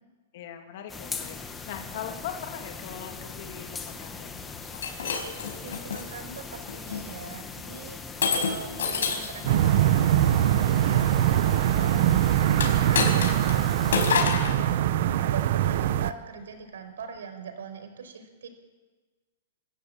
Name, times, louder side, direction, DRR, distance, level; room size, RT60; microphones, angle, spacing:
voice 1, 0.3-1.4 1.7-4.7, left 8 dB, 40° left, 4 dB, 2.2 m, -40 dB
sound 1, 0.9-14.3, left 4 dB, 10° left, 1.0 m, -40 dB
Shatter, 4.7-6.0 6.7-7.0 8.2-9.4 12.5-13.6 13.9-14.6, left 5 dB, 85° left, 4.6 m, -27 dB
voice 2, 5.6-8.0 8.4-14.8 15.3-18.5, right 5 dB, 90° right, 8 dB, 4.7 m, -42 dB
sound 2, 9.5-16.1, right 11 dB, 40° right, 0.7 m, -22 dB
26.5 x 13.5 x 8.7 m, 1.3 s
hypercardioid pair, 180°, 0 cm